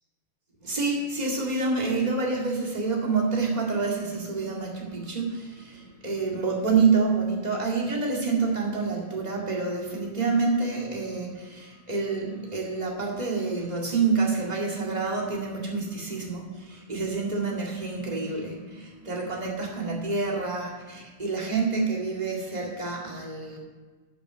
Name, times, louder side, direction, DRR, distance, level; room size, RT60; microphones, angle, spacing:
voice 1, 0.6-23.6, right 4 dB, 15° right, -3 dB, 1.6 m, -27 dB
11.0 x 6.0 x 6.1 m, 1.3 s
omnidirectional pair, 3.7 m